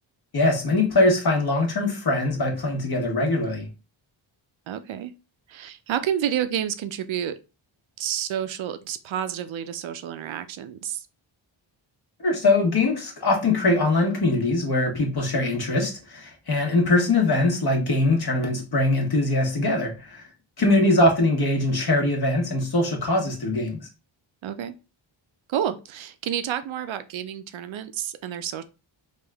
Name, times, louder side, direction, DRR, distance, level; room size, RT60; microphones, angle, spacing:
voice 1, 0.3-3.7 12.2-20.2 20.6-23.9, left 2 dB, 50° left, 1.3 m, -22 dB
voice 2, 4.7-5.1 5.5-7.4 8.0-11.1 20.7-20.8 24.4-24.7 25.5-28.6, right 10 dB, 70° right, 0.5 m, -29 dB
3.5 x 2.4 x 3.4 m
wide cardioid pair, 90°, 48 cm